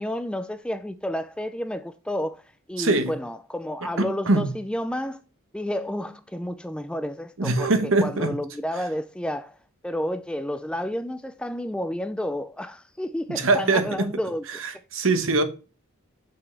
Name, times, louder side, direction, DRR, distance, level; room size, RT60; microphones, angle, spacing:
voice 1, 0.0-2.4 2.7-5.2 5.5-7.7 8.0-9.6 9.8-14.4, left 1 dB, 5° left, 0.3 m, -30 dB
voice 2, 2.8-3.1 4.0-4.5 7.4-8.3 13.3-14.1 14.5-15.4, right 3 dB, 65° right, 1.0 m, -23 dB
6.0 x 5.7 x 3.3 m
head